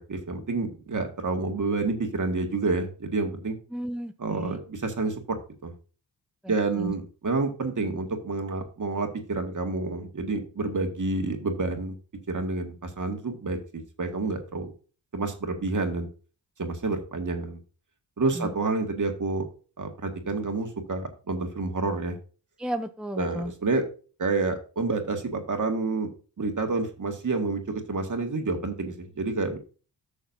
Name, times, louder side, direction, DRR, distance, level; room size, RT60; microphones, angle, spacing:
voice 1, 0.1-3.6 4.2-5.4 5.6-5.7 6.5-11.9 12.3-14.7 15.1-16.1 16.6-17.6 18.2-19.5 19.8-22.2 23.2-23.8 24.2-26.1 26.4-29.6, right 3 dB, 45° right, 4 dB, 2.0 m, -29 dB
voice 2, 3.7-4.6 6.4-6.9 18.3-18.5 22.6-23.5, equal, ahead, 8 dB, 0.6 m, -34 dB
12.0 x 6.4 x 2.7 m, 0.36 s
cardioid pair, 65°, 43 cm